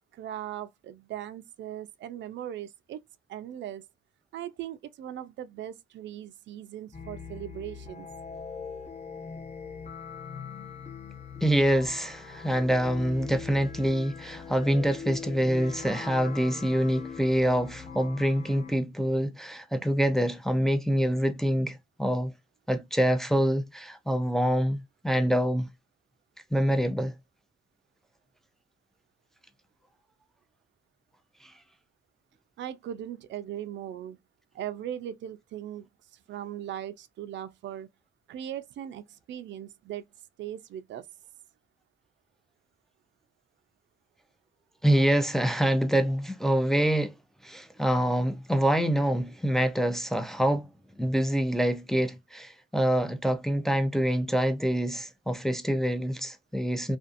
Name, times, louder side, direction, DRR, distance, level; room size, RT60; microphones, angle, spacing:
voice 1, 0.1-3.0 3.3-3.8 4.3-8.1 32.6-34.2 34.5-35.9 36.3-37.9 38.3-40.0 40.4-41.1, right 11 dB, 65° right, 0.4 m, -39 dB
sound 1, 6.9-18.7, left 6 dB, 35° left, 0.8 m, -41 dB
voice 2, 11.4-22.3 22.7-25.7 26.5-27.1 31.4-31.5 44.8-47.1 47.4-50.7 51.0-57.0, equal, ahead, 0.4 m, -26 dB
2.5 x 2.4 x 2.4 m
cardioid pair, 90°, 20 cm